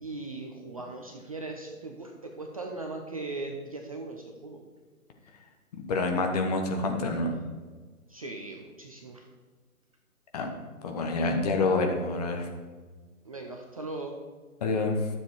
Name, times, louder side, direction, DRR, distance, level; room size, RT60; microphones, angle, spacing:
voice 1, 0.0-4.6 8.1-9.3 13.2-14.2, right 2 dB, 25° right, 2 dB, 0.6 m, -39 dB
voice 2, 5.9-7.3 10.3-10.5 10.8-12.5 14.6-15.1, left 3 dB, 25° left, 3 dB, 1.1 m, -27 dB
12.0 x 7.3 x 4.6 m, 1.4 s
figure-of-eight pair, 135°, 45 cm